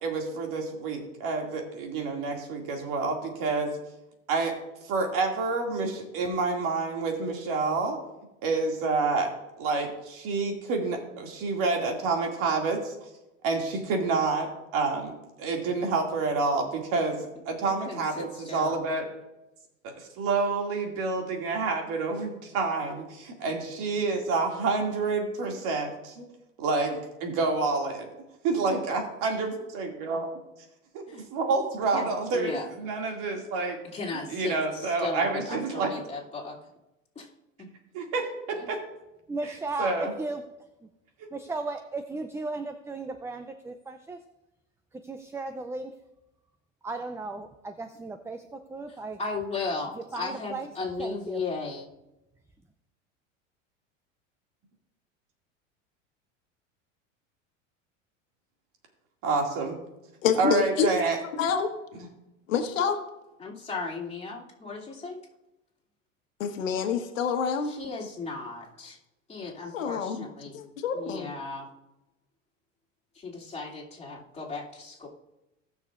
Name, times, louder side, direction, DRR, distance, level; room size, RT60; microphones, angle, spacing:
voice 1, 0.0-3.7 4.3-4.5 4.8-8.0 8.4-9.3 9.6-12.9 13.4-15.1 15.4-19.0 19.8-26.2 26.6-28.1 28.4-30.3 30.9-33.8 34.3-35.9 37.9-38.8 39.4-40.1 41.2-41.3 59.2-59.8 60.4-61.2 62.0-62.1, right 3 dB, 55° right, 2 dB, 2.4 m, -28 dB
voice 2, 17.6-18.9 31.1-31.2 31.9-32.7 33.9-36.6 37.1-37.3 37.6-37.7 38.5-38.7 49.0-51.9 63.4-65.2 67.6-69.0 69.3-70.6 70.9-71.7 73.1-75.1, left 3 dB, 15° left, -5 dB, 2.8 m, -36 dB
voice 3, 39.3-40.4 41.3-44.2 45.0-45.9 46.8-49.2 50.1-50.7 51.0-51.4, right 3 dB, 5° right, 8 dB, 0.5 m, -35 dB
voice 4, 60.2-60.9 61.2-61.7 62.5-63.0 66.4-67.7 69.7-70.2 70.5-71.3, left 7 dB, 85° left, 6 dB, 1.4 m, -27 dB
18.5 x 6.4 x 2.5 m, 0.95 s
hypercardioid pair, 95°, 38 cm